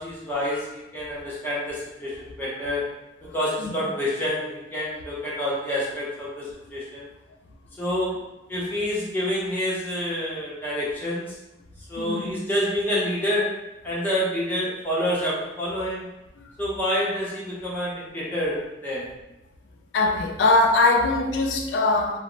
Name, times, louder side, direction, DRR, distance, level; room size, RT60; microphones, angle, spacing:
voice 1, 0.0-2.8 3.3-6.5 6.7-7.0 7.8-8.1 8.5-11.3 11.9-13.5 13.8-16.1 16.6-18.6 18.8-19.1, equal, 10° left, -7 dB, 0.7 m, -27 dB
voice 2, 12.0-12.3 16.4-16.5 19.9-22.2, left 2 dB, 85° left, 2 dB, 0.3 m, -22 dB
2.0 x 2.0 x 3.7 m, 0.97 s
head